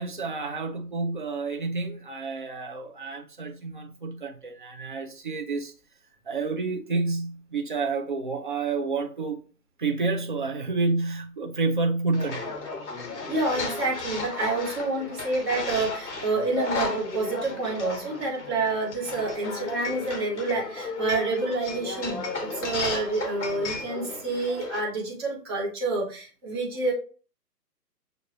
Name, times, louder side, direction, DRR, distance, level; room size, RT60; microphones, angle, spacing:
voice 1, 0.0-5.7 6.3-9.4 9.8-12.5, right 3 dB, 30° right, 0.6 m, -29 dB
sound 1, 12.1-24.8, left 3 dB, 45° left, 1.1 m, -34 dB
voice 2, 13.3-26.9, right 3 dB, 15° right, 1.0 m, -28 dB
6.7 x 2.5 x 2.9 m
hypercardioid pair, 155°, 49 cm